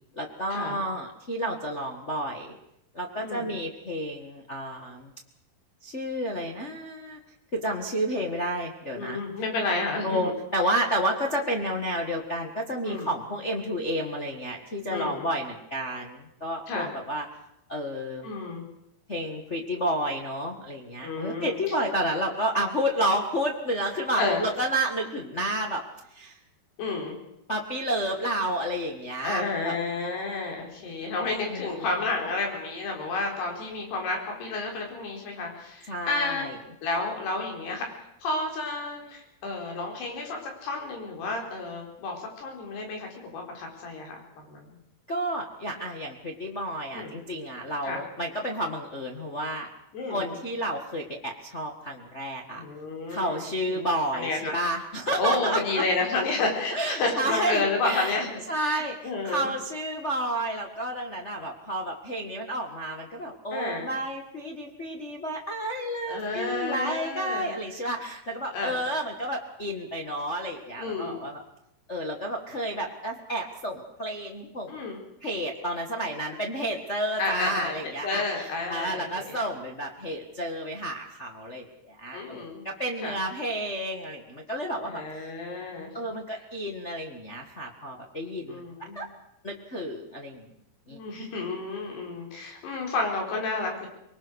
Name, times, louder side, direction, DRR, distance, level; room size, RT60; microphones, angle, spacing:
voice 1, 0.2-2.5 2.9-5.1 5.8-7.2 7.5-9.2 10.0-17.2 17.7-18.3 19.1-25.8 26.1-26.4 27.5-29.7 31.5-31.8 35.9-36.5 45.1-49.7 50.1-52.6 53.1-55.8 56.7-58.2 58.5-71.4 71.9-74.8 75.2-85.3 85.9-89.1 89.4-90.5 90.9-91.0, right 1 dB, 70° left, 1 dB, 0.6 m, -31 dB
voice 2, 3.2-3.6 9.0-10.3 12.8-13.1 14.9-15.3 16.7-16.9 18.2-18.6 21.0-21.8 24.2-24.4 26.8-27.2 29.2-36.5 36.8-37.9 38.2-44.8 46.9-47.2 47.8-48.0 49.9-50.3 52.5-53.8 54.1-54.6 55.2-59.5 63.5-63.9 66.1-67.5 68.5-68.8 70.8-71.2 74.7-75.0 77.2-77.8 78.0-79.4 82.1-82.6 83.0-83.2 84.9-85.9 88.5-89.0 90.9-93.9, left 3 dB, 85° left, 1 dB, 6.6 m, -31 dB
24.5 x 21.5 x 6.4 m, 0.82 s
omnidirectional pair, 4.6 m